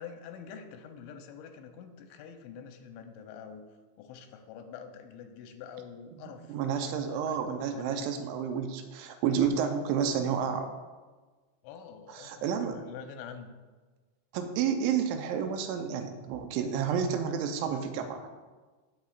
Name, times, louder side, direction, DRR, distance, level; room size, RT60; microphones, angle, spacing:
voice 1, 0.0-3.6 4.0-8.0 11.6-13.5, left 7 dB, 90° left, 5 dB, 3.0 m, -46 dB
voice 2, 6.2-10.7 12.1-12.8 14.3-18.3, right 7 dB, 90° right, 6 dB, 3.0 m, -30 dB
15.5 x 6.5 x 2.4 m, 1.3 s
omnidirectional pair, 5.3 m